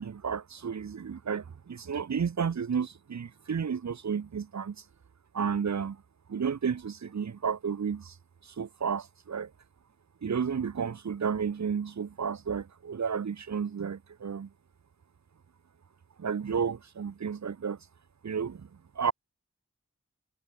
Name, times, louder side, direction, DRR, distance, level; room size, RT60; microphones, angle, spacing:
voice 1, 0.0-4.8 5.3-6.0 6.3-8.1 8.6-9.5 10.2-14.5 16.2-17.8 18.2-18.7 19.0-19.1, right 6 dB, 70° right, 0.6 m, -32 dB
wide cardioid pair, 45°, 29 cm